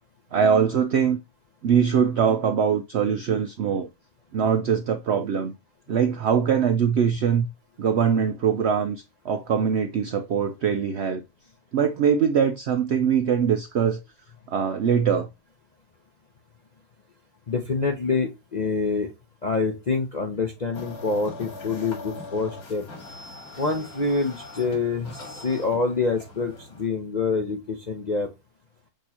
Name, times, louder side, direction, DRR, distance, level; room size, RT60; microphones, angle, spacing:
voice 1, 0.3-1.2 1.6-3.9 4.3-5.5 5.9-7.5 7.8-11.2 11.7-14.0 14.5-15.3, right 7 dB, 75° right, 0.6 m, -22 dB
voice 2, 17.5-19.1 19.4-22.8 23.6-28.3, left 4 dB, 50° left, 0.5 m, -26 dB
sound 1, 20.7-26.9, left 3 dB, 65° left, 2.1 m, -41 dB
6.3 x 3.0 x 2.8 m
omnidirectional pair, 1.7 m